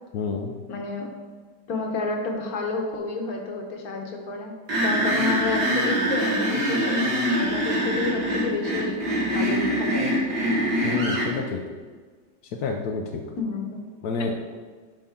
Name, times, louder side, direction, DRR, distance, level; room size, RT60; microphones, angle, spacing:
voice 1, 0.1-0.5 10.8-11.6 12.6-13.2 14.0-14.3, left 4 dB, 65° left, 1 dB, 0.9 m, -28 dB
voice 2, 0.7-1.1 1.7-4.5 4.8-10.3 13.4-13.8, left 3 dB, 50° left, 1 dB, 1.5 m, -30 dB
sound 1, 4.7-11.3, equal, 50° right, 2.5 m, -24 dB
11.0 x 5.4 x 3.7 m, 1.5 s
omnidirectional pair, 2.2 m